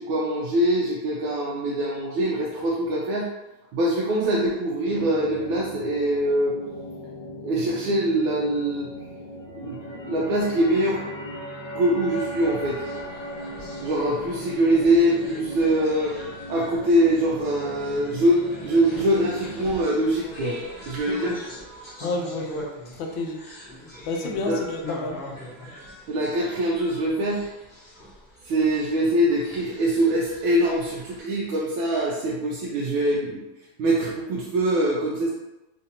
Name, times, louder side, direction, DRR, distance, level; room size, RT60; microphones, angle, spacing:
voice 1, 0.0-3.3 3.7-6.5 7.4-8.9 9.6-11.1 11.7-12.8 13.8-16.1 16.5-20.6 20.9-21.3 24.5-24.6 26.1-27.4 28.4-33.4 33.8-35.3, right 1 dB, 85° right, -4 dB, 1.4 m, -23 dB
sound 1, 4.8-19.7, equal, 50° left, 1.1 m, -39 dB
sound 2, 9.4-16.4, equal, 70° left, 1.0 m, -39 dB
sound 3, 12.4-31.2, left 1 dB, 30° left, 0.9 m, -42 dB
voice 2, 21.1-21.4 22.0-22.6 22.9-23.4 24.1-25.2, left 2 dB, 85° left, 3 dB, 1.4 m, -30 dB
4.3 x 2.5 x 2.7 m, 1.0 s
omnidirectional pair, 2.1 m